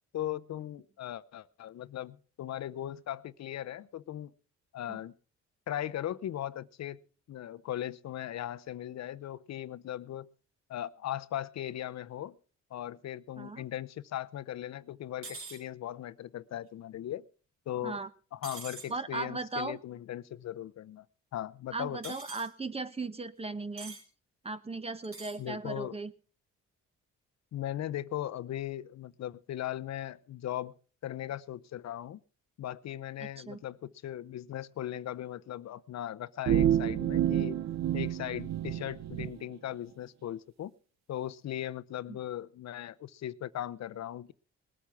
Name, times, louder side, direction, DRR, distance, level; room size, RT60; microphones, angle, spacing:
voice 1, 0.1-4.3 4.7-5.1 5.7-7.0 7.3-10.3 10.7-12.4 12.7-17.2 17.7-18.0 18.3-21.0 21.3-22.2 25.4-26.0 27.5-30.7 31.0-32.2 32.6-37.6 37.9-40.7 41.1-44.3, left 12 dB, 60° left, 16 dB, 0.7 m, -38 dB
sound 1, 15.2-15.6 18.4-18.9 22.0-22.5 23.8-24.0 25.0-25.4, right 3 dB, 45° right, 4.3 m, -44 dB
voice 2, 18.9-19.8 21.7-24.0 24.4-26.1 33.2-33.6 42.1-42.2, right 3 dB, 20° right, 13 dB, 1.1 m, -37 dB
sound 2, 36.5-39.3, right 11 dB, 60° right, 0.6 m, -29 dB
20.0 x 8.4 x 5.9 m, 0.40 s
cardioid pair, 90°, 30 cm